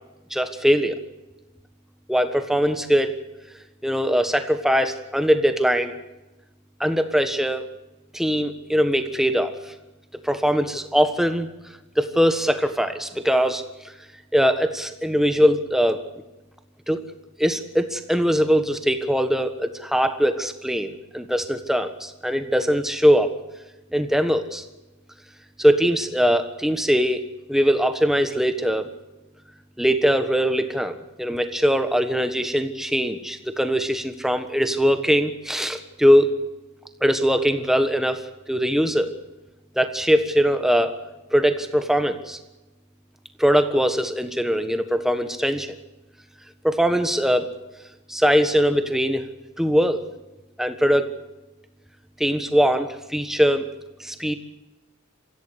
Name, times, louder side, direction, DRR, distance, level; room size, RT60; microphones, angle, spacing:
voice 1, 0.3-0.9 2.1-3.1 3.8-5.9 6.8-7.6 8.1-9.7 10.2-11.5 12.0-13.9 14.3-16.0 16.9-17.0 17.4-23.3 23.9-24.6 25.6-28.9 29.8-36.3 37.0-38.2 38.5-39.1 39.7-41.0 41.3-42.4 43.4-45.8 46.6-47.5 48.1-49.2 49.6-50.0 50.6-51.1 52.2-53.7 54.0-54.3, equal, ahead, 8 dB, 1.4 m, -21 dB
24.5 x 16.0 x 8.2 m, 1.1 s
head